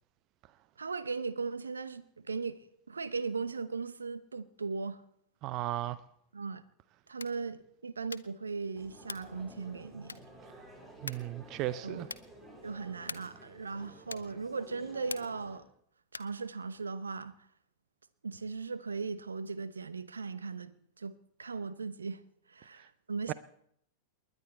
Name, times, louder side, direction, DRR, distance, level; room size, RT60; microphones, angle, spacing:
voice 1, 0.8-5.0 6.3-6.6 7.1-10.2 11.8-12.0 12.6-15.7 16.1-17.3 18.2-22.2 22.5-23.3, right 4 dB, 75° right, 0.9 m, -38 dB
voice 2, 5.4-6.0 11.0-12.1 23.3-23.4, right 15 dB, 40° right, 0.5 m, -35 dB
sound 1, 7.1-7.5 8.0-8.4 9.0-9.4 10.0-10.4 11.1-11.4 12.0-12.4 13.0-13.4 14.1-14.4 15.1-15.5 16.1-16.4, left 4 dB, 75° left, 0.7 m, -44 dB
sound 2, 8.7-15.6, right 1 dB, 15° right, 4.2 m, -53 dB
29.5 x 11.0 x 4.4 m
figure-of-eight pair, 90°, 0 cm